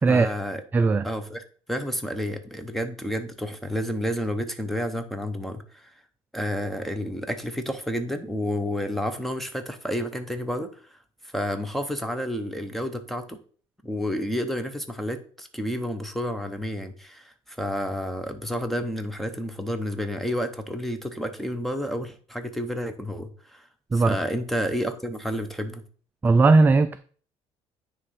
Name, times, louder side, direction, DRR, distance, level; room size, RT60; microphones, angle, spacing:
voice 1, 0.1-0.6 1.0-1.4 1.7-5.9 6.3-10.7 11.3-13.4 13.8-23.7 23.9-25.8, equal, ahead, 8 dB, 0.8 m, -30 dB
voice 2, 0.7-1.1 23.9-24.2 26.2-27.0, right 3 dB, 15° right, 10 dB, 0.3 m, -18 dB
9.3 x 3.2 x 5.5 m, 0.44 s
cardioid pair, 135°, 11 cm